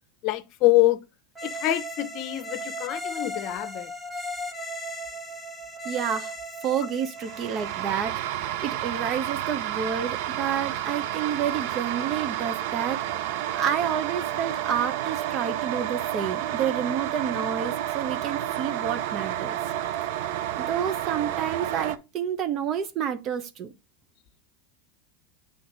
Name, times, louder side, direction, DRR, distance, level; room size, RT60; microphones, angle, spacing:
voice 1, 0.2-1.0 1.4-3.9, left 16 dB, 50° left, 0.9 m, -25 dB
sound 1, 1.3-8.0, equal, 10° right, 1.3 m, -36 dB
voice 2, 5.8-6.3 6.6-8.2 8.6-19.6 20.2-23.7, right 8 dB, 45° right, 0.9 m, -29 dB
sound 2, 7.2-22.0, right 12 dB, 70° right, 0.6 m, -30 dB
7.9 x 3.7 x 4.0 m
supercardioid pair, 115°, 0 cm